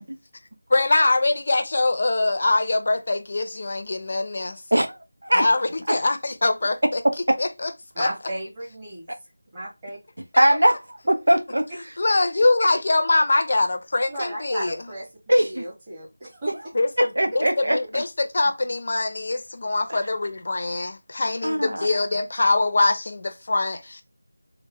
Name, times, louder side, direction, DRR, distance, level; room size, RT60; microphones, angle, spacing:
voice 1, 0.7-4.6 5.3-7.0 7.4-7.7 8.0-8.1 12.0-14.8 16.7-17.1 17.3-24.0, left 2 dB, 45° left, 0.6 m, -23 dB
voice 2, 7.0-7.4 10.4-11.7 15.3-15.6 17.0-18.0 21.4-21.9, right 1 dB, 90° right, 0.9 m, -20 dB
voice 3, 7.9-9.1 9.5-10.0 14.1-15.1 15.4-16.5, right 1 dB, 20° right, 1.5 m, -34 dB
3.1 x 2.4 x 3.4 m
figure-of-eight pair, 170°, 0 cm